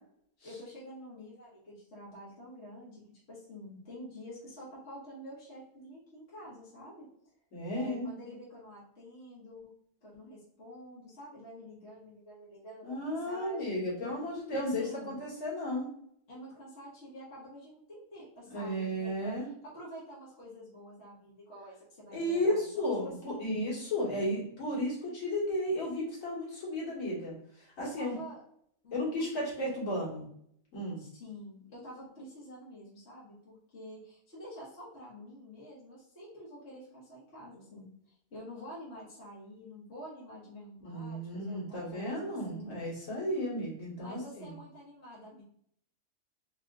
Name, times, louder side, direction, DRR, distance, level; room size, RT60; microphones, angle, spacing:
voice 1, 0.4-3.0 3.3-7.1 7.7-9.7 10.0-13.8 14.5-15.2 16.3-19.3 19.6-23.6 27.8-28.4 28.8-29.3 31.0-42.8 43.9-45.4, equal, 55° left, -8 dB, 1.5 m, -48 dB
voice 2, 7.5-8.1 12.8-15.9 18.5-19.5 22.1-28.2 28.9-30.2 30.7-31.0 40.8-44.6, left 1 dB, 75° left, -6 dB, 2.0 m, -34 dB
4.8 x 2.8 x 2.4 m, 0.68 s
omnidirectional pair, 1.4 m